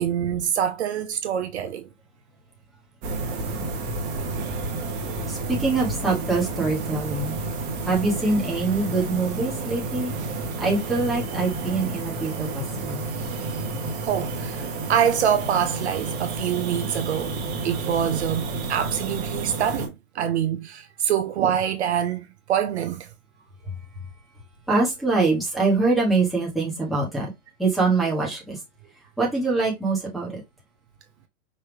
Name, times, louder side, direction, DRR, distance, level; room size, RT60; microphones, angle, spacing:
voice 1, 0.0-1.9 14.0-23.1, right 9 dB, 50° right, 0.7 m, -25 dB
sound 1, 3.0-19.9, right 3 dB, 20° right, 1.3 m, -30 dB
voice 2, 5.3-7.4 7.8-10.1 10.6-13.0 18.0-18.1 24.7-27.3 27.6-28.6 29.2-30.4, right 3 dB, ahead, 1.3 m, -24 dB
5.3 x 2.7 x 3.3 m
hypercardioid pair, 150°, 44 cm